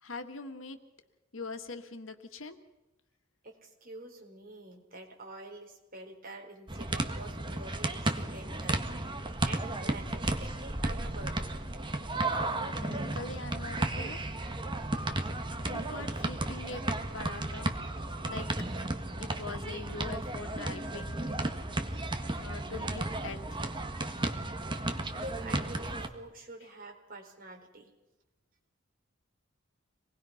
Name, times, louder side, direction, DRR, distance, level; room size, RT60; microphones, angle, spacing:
voice 1, 0.0-0.8 1.3-2.6 12.6-14.2 15.7-16.8 17.1-17.7 18.2-18.5 19.2-21.2 22.4-23.6, left 3 dB, 85° left, 7 dB, 1.8 m, -42 dB
voice 2, 3.4-11.6 24.8-24.9 25.1-27.9, right 2 dB, 45° right, 1 dB, 4.5 m, -47 dB
sound 1, 6.7-26.1, right 2 dB, 25° right, 1.6 m, -34 dB
26.5 x 20.0 x 5.9 m, 1.0 s
head